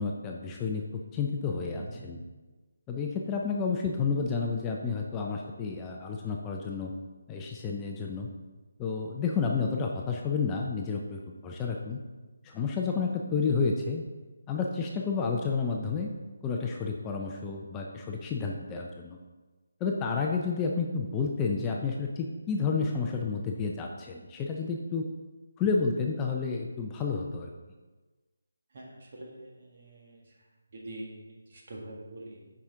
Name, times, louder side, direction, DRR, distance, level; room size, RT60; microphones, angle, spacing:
voice 1, 0.0-2.2 2.9-6.9 7.3-8.3 8.8-12.0 12.4-14.0 14.5-16.1 16.4-19.2 19.8-25.1 25.6-27.5, left 5 dB, 15° left, 0 dB, 0.4 m, -30 dB
voice 2, 1.7-2.1 28.7-30.3 30.7-32.5, right 1 dB, 50° right, -2 dB, 1.7 m, -45 dB
7.0 x 5.0 x 3.6 m, 1.3 s
figure-of-eight pair, 160°, 0 cm